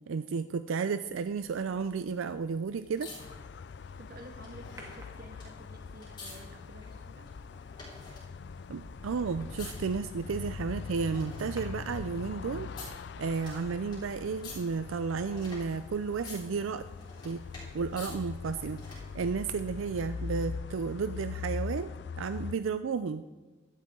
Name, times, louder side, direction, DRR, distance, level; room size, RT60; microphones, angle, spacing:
voice 1, 0.1-3.1 8.7-12.7 13.2-16.8 17.2-17.4 17.7-18.8 19.1-21.9 22.2-23.2, right 5 dB, 85° right, 11 dB, 0.4 m, -32 dB
sound 1, 1.1-19.2 20.5-20.6, left 2 dB, 20° left, 3.7 m, -51 dB
sound 2, 3.2-22.6, left 5 dB, 55° left, 0.3 m, -42 dB
voice 2, 3.9-7.3, right 1 dB, 45° right, 4 dB, 1.6 m, -51 dB
sound 3, 4.8-5.8 7.7-7.9 8.4-14.6 14.9-15.0, equal, 15° right, 1.8 m, -53 dB
15.5 x 11.5 x 3.7 m, 1.2 s
head